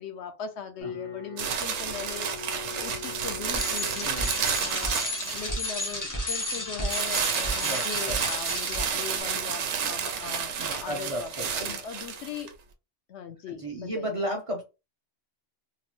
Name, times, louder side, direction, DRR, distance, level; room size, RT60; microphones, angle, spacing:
voice 1, 0.0-4.1 4.6-12.5 13.1-14.1, left 6 dB, 70° left, 0.8 m, -40 dB
sound 1, 0.8-11.9, left 6 dB, 90° left, 1.2 m, -46 dB
sound 2, 1.4-6.0 6.9-12.5, right 7 dB, 75° right, 0.9 m, -31 dB
Bicycle, 3.5-9.2, left 1 dB, 20° left, 0.6 m, -32 dB
voice 2, 7.6-8.3 10.5-11.8 13.3-14.6, equal, 40° right, 0.5 m, -34 dB
2.9 x 2.0 x 3.0 m
omnidirectional pair, 1.2 m